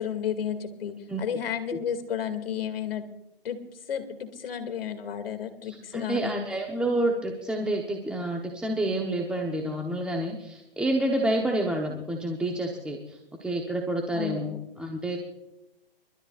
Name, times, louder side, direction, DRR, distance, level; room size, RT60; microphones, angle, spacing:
voice 1, 0.0-3.1 3.4-3.6 3.9-6.5 11.4-11.5 14.1-14.6, left 8 dB, 70° left, 8 dB, 2.4 m, -32 dB
voice 2, 5.7-14.5 14.8-15.2, right 1 dB, 5° right, 0 dB, 1.0 m, -29 dB
28.5 x 13.0 x 2.5 m, 0.90 s
hypercardioid pair, 140°, 29 cm